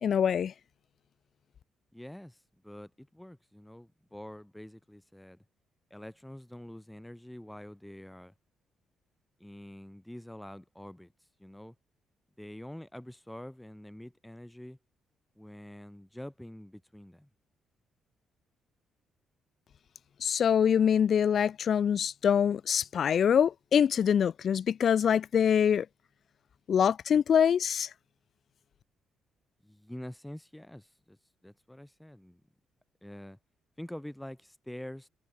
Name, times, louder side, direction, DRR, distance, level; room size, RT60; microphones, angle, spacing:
voice 1, 0.0-0.5 20.2-25.9 26.7-27.9, left 8 dB, 55° left, 1.1 m, -25 dB
voice 2, 1.9-5.4 5.9-8.3 9.4-11.1 11.4-11.7 12.4-14.8 15.4-17.3 29.6-31.2 31.4-32.4 33.0-33.4 33.8-35.1, left 1 dB, 5° left, 4.4 m, -46 dB
cardioid pair, 90°, 0 cm